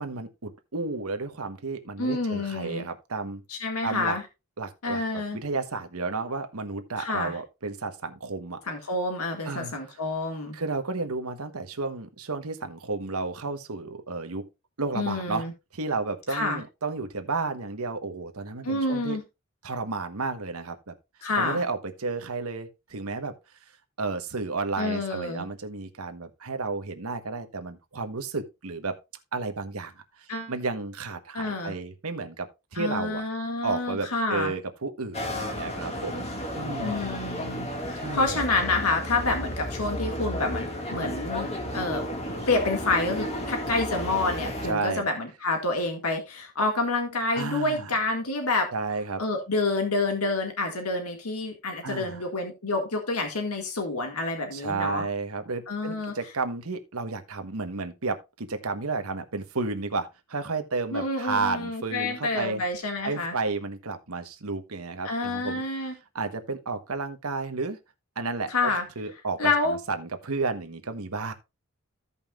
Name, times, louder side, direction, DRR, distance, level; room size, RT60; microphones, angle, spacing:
voice 1, 0.0-3.4 3.8-4.1 4.6-8.6 9.4-9.7 10.5-14.5 14.8-15.5 15.7-19.2 19.6-20.9 21.4-23.3 24.0-29.0 29.3-33.2 33.6-36.3 36.5-37.0 38.0-38.4 40.9-41.1 44.6-45.0 47.3-47.9 48.7-49.2 51.8-52.2 54.5-62.6 63.0-65.6 66.1-67.8 68.2-68.7 69.0-71.3, right 3 dB, 85° right, 1.2 m, -32 dB
voice 2, 2.0-2.9 3.5-4.2 4.8-5.4 7.0-7.3 8.7-10.6 14.9-15.5 16.3-16.6 18.6-19.2 21.2-21.6 24.8-25.5 30.3-30.5 31.3-31.7 32.8-34.5 36.8-42.0 42.5-48.7 49.2-55.0 55.7-56.1 60.9-63.3 65.0-65.9 68.5-68.8 69.4-69.8, left 3 dB, 90° left, 1.9 m, -28 dB
sound 1, 35.1-44.7, equal, 30° left, 1.9 m, -33 dB
16.0 x 5.5 x 2.4 m
head